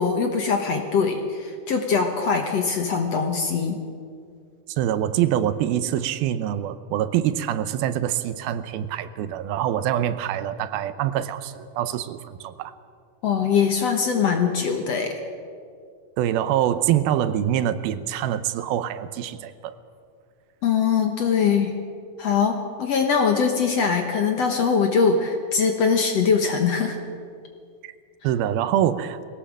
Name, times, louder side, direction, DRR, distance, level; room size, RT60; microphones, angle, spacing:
voice 1, 0.0-3.8 13.2-15.2 20.6-21.7 22.2-27.0, left 6 dB, 60° left, 4 dB, 1.9 m, -22 dB
voice 2, 4.7-12.7 16.2-19.7 27.8-27.9 28.2-29.2, right 11 dB, 85° right, 12 dB, 2.7 m, -25 dB
21.5 x 17.0 x 7.5 m, 2.3 s
omnidirectional pair, 4.2 m